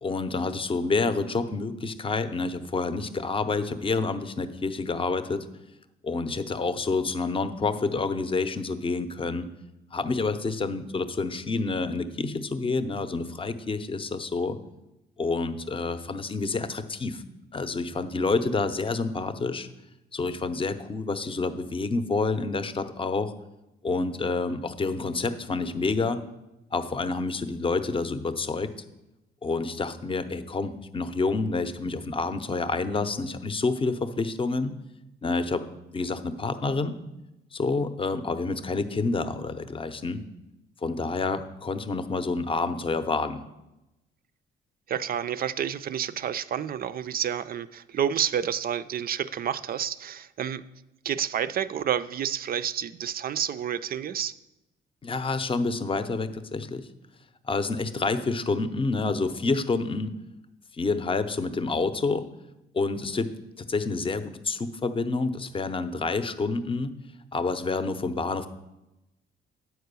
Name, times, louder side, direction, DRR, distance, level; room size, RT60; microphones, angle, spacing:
voice 1, 0.0-5.5 6.0-9.5 9.9-14.6 15.2-17.2 17.5-19.7 20.1-23.3 23.8-26.2 26.7-28.7 29.4-34.7 35.2-35.6 35.9-37.0 37.5-40.2 40.8-43.4 55.0-56.9 57.4-60.1 60.7-62.3 62.7-63.3 63.6-66.9 67.3-68.5, left 3 dB, 25° left, 11 dB, 0.6 m, -28 dB
voice 2, 44.9-50.6 51.0-54.4, right 9 dB, 50° right, 14 dB, 0.4 m, -29 dB
8.8 x 4.6 x 6.8 m, 0.95 s
cardioid pair, 90°, 20 cm